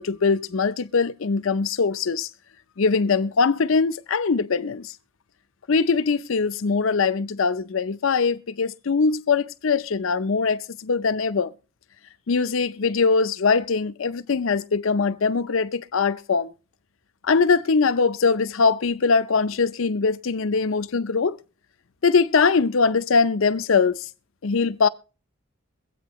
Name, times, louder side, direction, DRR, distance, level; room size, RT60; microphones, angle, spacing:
voice 1, 0.0-2.3 2.8-4.9 5.7-11.5 12.3-16.5 17.3-21.4 22.0-24.0 24.4-24.9, left 4 dB, 65° left, 0.5 m, -22 dB
23.0 x 8.4 x 3.0 m
head